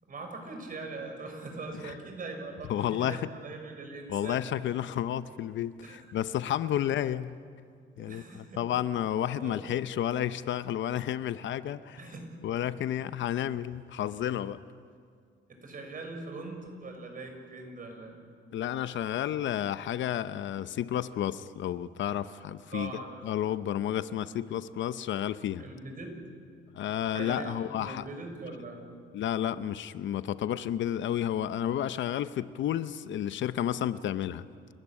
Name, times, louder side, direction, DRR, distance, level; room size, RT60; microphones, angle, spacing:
voice 1, 0.0-4.7 5.8-6.0 6.7-6.8 7.9-8.6 9.4-9.6 12.0-12.2 15.5-18.2 22.7-23.2 25.6-26.2 26.7-29.0, right 3 dB, 45° right, 4 dB, 6.0 m, -42 dB
voice 2, 2.7-3.2 4.1-7.3 8.0-12.0 12.4-14.6 18.5-22.9 23.2-25.6 26.7-28.0 29.1-34.5, left 11 dB, 70° left, 14 dB, 0.8 m, -31 dB
30.0 x 13.5 x 10.0 m, 2.2 s
cardioid pair, 90°, 20 cm